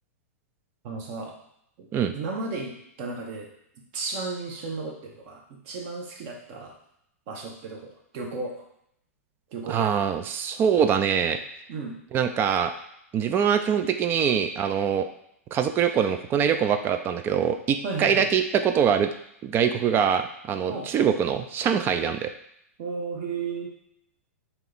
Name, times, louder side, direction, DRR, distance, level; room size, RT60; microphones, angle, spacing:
voice 1, 0.8-1.3 1.8-1.9 2.1-3.5 3.9-6.7 7.3-8.6 9.5-10.0 11.7-12.0 15.9-16.0 17.8-18.3 20.7-20.9 22.8-23.7, right 4 dB, 50° right, 0 dB, 1.1 m, -34 dB
voice 2, 9.7-11.4 12.1-12.7 13.1-15.1 15.5-19.1 19.4-22.3, right 7 dB, 25° right, 8 dB, 0.4 m, -23 dB
3.4 x 2.9 x 3.9 m, 0.73 s
hypercardioid pair, 115°, 8 cm